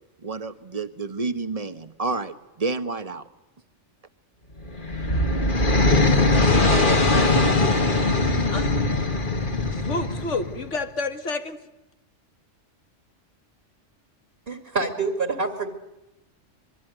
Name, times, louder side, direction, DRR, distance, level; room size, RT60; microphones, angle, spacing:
voice 1, 0.2-3.2, right 3 dB, 30° right, 10 dB, 1.3 m, -29 dB
sound 1, 4.6-10.7, left 2 dB, 45° left, 2.2 m, -21 dB
voice 2, 9.7-11.6, left 3 dB, 85° left, 8 dB, 2.0 m, -29 dB
voice 3, 14.5-15.7, right 3 dB, 50° right, 6 dB, 2.5 m, -26 dB
25.0 x 22.5 x 9.3 m, 0.94 s
omnidirectional pair, 1.2 m